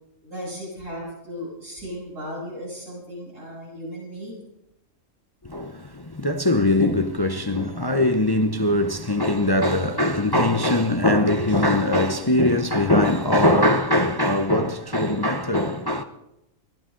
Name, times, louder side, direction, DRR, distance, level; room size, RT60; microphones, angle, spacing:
voice 1, 0.2-4.3, equal, 70° right, 8.3 m, -36 dB
voice 2, 5.4-16.0, left 1 dB, 25° left, 0.5 m, -21 dB
22.5 x 16.0 x 3.8 m
omnidirectional pair, 1.4 m